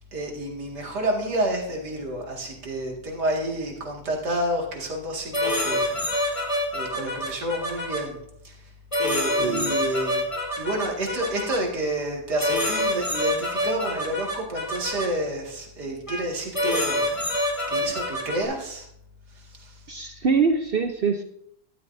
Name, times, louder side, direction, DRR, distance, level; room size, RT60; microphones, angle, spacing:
voice 1, 0.1-6.5 6.7-8.6 9.0-10.3 10.6-17.1 17.7-18.9 19.5-19.8, right 1 dB, 90° right, 0 dB, 2.6 m, -29 dB
sound 1, 5.3-8.0 8.9-11.6 12.4-15.1 16.1-16.2 16.5-18.4, left 1 dB, 20° left, 2.0 m, -26 dB
voice 2, 9.4-9.9 19.9-21.2, right 5 dB, 60° right, 6 dB, 0.6 m, -24 dB
12.5 x 12.0 x 2.6 m, 0.75 s
omnidirectional pair, 1.7 m